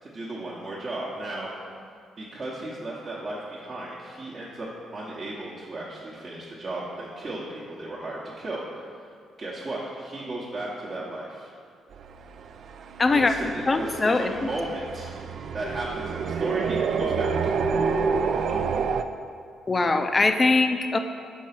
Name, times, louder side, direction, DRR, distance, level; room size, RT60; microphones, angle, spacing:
voice 1, 0.0-1.5 2.2-8.6 9.4-11.5 13.1-15.2 15.5-17.5, right 2 dB, 40° right, -7 dB, 1.0 m, -34 dB
sound 1, 11.9-19.0, right 5 dB, 60° right, 0.3 m, -28 dB
voice 2, 13.0-13.3 13.7-14.3 19.7-21.0, left 3 dB, 30° left, 7 dB, 0.4 m, -21 dB
4.7 x 4.6 x 5.8 m, 2.2 s
cardioid pair, 90°, 0 cm